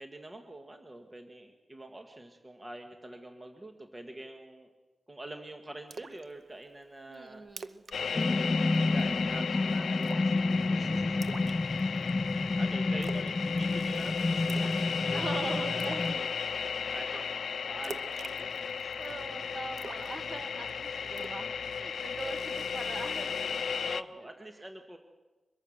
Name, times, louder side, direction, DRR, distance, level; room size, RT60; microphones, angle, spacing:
voice 1, 0.0-4.7 5.1-7.4 8.0-11.4 12.3-16.3 16.9-18.9 20.9-21.3 22.2-22.3 23.8-25.0, right 1 dB, 15° right, 4 dB, 1.5 m, -46 dB
Splash splatter, 5.9-6.2 6.6-6.7 7.1-7.2 7.5-8.0 8.2-8.4 8.7-9.1 10.0-10.4 11.2-12.1 13.0-13.3 13.6-14.0 14.5-14.9 15.2-15.3 15.8-16.1 17.8-19.1 19.8-20.7 21.2-21.4, right 4 dB, 60° right, 0.8 m, -44 dB
voice 2, 7.1-7.8 10.8-11.2 11.9-12.2 15.1-16.3 17.1-17.2 19.0-23.5, right 2 dB, 35° right, 6 dB, 1.8 m, -42 dB
sound 1, 7.9-24.0, left 6 dB, 75° left, 0.7 m, -35 dB
sound 2, 8.2-16.1, left 2 dB, 20° left, 0.7 m, -30 dB
24.0 x 22.0 x 6.4 m, 1.2 s
wide cardioid pair, 180°, 0 cm